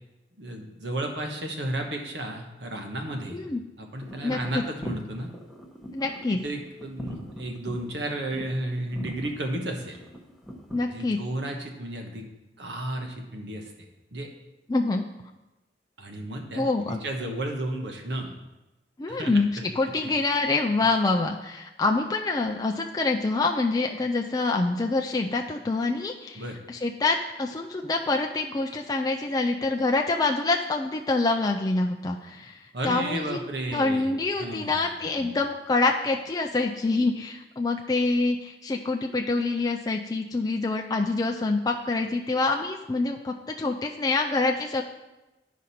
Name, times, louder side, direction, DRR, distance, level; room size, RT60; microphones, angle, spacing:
voice 1, 0.4-3.4 3.8-5.3 6.3-10.0 10.9-12.3 12.6-13.7 14.1-14.3 16.0-18.4 19.1-20.1 26.3-26.6 32.7-34.1 34.4-34.8 35.2-35.3, right 1 dB, 75° right, 2 dB, 1.3 m, -33 dB
voice 2, 3.3-3.6 4.2-4.6 5.9-6.4 10.7-11.2 14.7-15.0 16.6-17.0 19.0-26.4 26.7-33.4 33.7-44.8, left 3 dB, 20° left, 2 dB, 0.4 m, -26 dB
sound 1, 4.0-11.0, equal, ahead, 1.0 m, -41 dB
11.0 x 5.1 x 4.3 m, 1.0 s
head